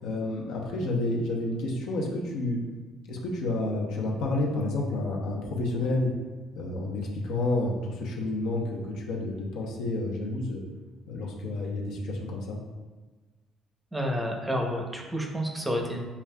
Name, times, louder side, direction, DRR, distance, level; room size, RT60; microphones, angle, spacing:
voice 1, 0.0-2.6 3.1-6.1 6.6-10.6 11.1-12.6, left 2 dB, 80° left, -2 dB, 0.8 m, -30 dB
voice 2, 13.9-16.1, equal, 10° right, 1 dB, 0.6 m, -30 dB
6.8 x 2.4 x 2.2 m, 1.3 s
cardioid pair, 105°, 0 cm